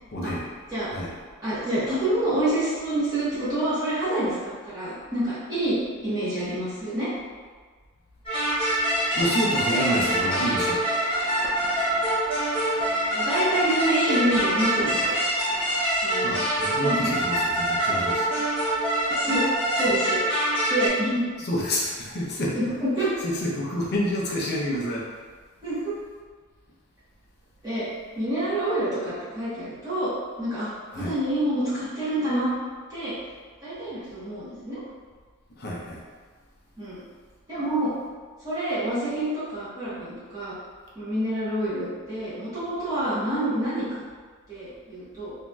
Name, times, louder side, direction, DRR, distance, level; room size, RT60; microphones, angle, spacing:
voice 1, 0.1-0.4 0.9-1.1 9.1-10.8 16.2-18.3 21.4-22.6 23.2-25.1 30.9-31.1 35.6-36.0, equal, 50° left, -4 dB, 0.6 m, -28 dB
voice 2, 1.4-7.1 9.7-9.8 13.1-15.1 16.0-16.4 16.8-17.0 19.1-19.5 19.7-20.2 20.7-21.3 22.5-23.1 25.6-25.9 27.6-27.9 28.1-30.1 30.4-32.5 32.9-33.1 33.6-34.8 36.8-37.0 37.5-37.9 38.4-40.5 40.9-44.0 44.5-45.3, right 1 dB, 20° right, -15 dB, 1.2 m, -27 dB
sound 1, 8.3-20.9, right 1 dB, 25° left, 0.9 m, -25 dB
sound 2, 8.9-15.9, right 1 dB, 40° right, 0.5 m, -41 dB
3.0 x 2.6 x 2.3 m, 1.5 s
head